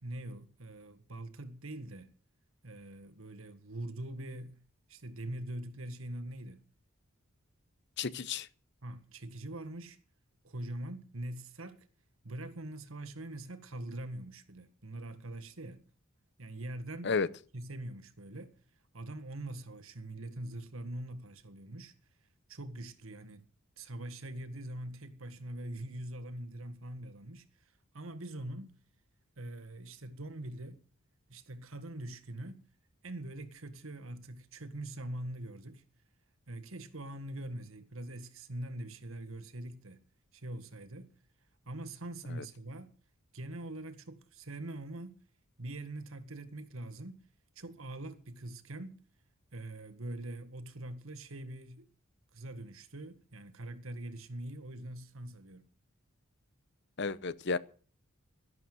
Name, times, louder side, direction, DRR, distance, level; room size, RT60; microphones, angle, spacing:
voice 1, 0.0-2.1 2.6-4.6 4.9-6.6 8.8-10.0 10.4-11.9 12.2-15.9 16.4-17.2 17.5-18.5 18.9-21.9 22.5-23.5 23.8-28.8 29.4-30.8 31.3-32.6 33.0-35.8 36.5-40.0 40.3-41.1 41.7-42.9 43.3-45.2 45.6-47.2 47.6-49.0 49.5-51.9 52.3-55.7, right 1 dB, 75° right, 1.7 m, -43 dB
voice 2, 8.0-8.5 17.0-17.3 57.0-57.6, left 4 dB, 55° left, 0.8 m, -32 dB
13.0 x 11.0 x 7.9 m
head